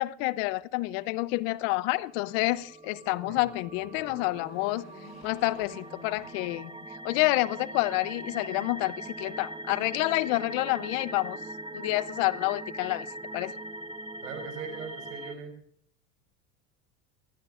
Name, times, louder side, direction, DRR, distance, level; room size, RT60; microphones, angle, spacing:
voice 1, 0.0-4.8 5.2-6.8 7.0-11.4 11.7-13.1 13.3-13.5, left 20 dB, 70° left, 0.8 m, -28 dB
sound 1, 2.1-15.3, right 1 dB, 15° right, 1.2 m, -41 dB
sound 2, 3.4-7.0 7.5-7.6 8.6-9.4, left 4 dB, 40° left, 6.8 m, -52 dB
voice 2, 14.2-15.6, right 6 dB, 90° right, 5.0 m, -40 dB
22.0 x 16.0 x 2.5 m
supercardioid pair, 95°, 40 cm